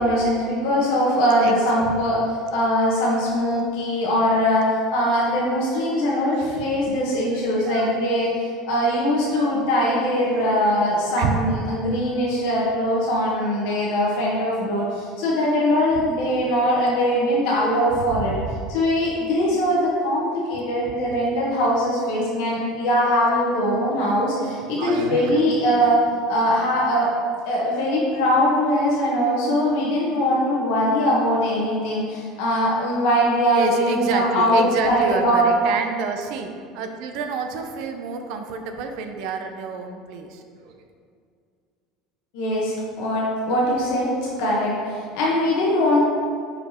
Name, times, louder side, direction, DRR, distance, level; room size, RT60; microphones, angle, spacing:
voice 1, 0.0-4.7 4.9-18.4 18.7-26.0 26.3-27.1 27.4-35.5 42.3-46.0, equal, 75° left, -5 dB, 1.3 m, -21 dB
voice 2, 1.4-2.0 2.4-2.6 5.9-6.6 7.3-7.9 9.3-9.6 10.3-10.5 11.2-11.4 18.0-18.5 24.6-25.5 33.5-36.5 36.7-40.8, right 5 dB, 65° right, 5 dB, 0.7 m, -29 dB
5.3 x 4.6 x 4.4 m, 2.2 s
supercardioid pair, 110°, 0 cm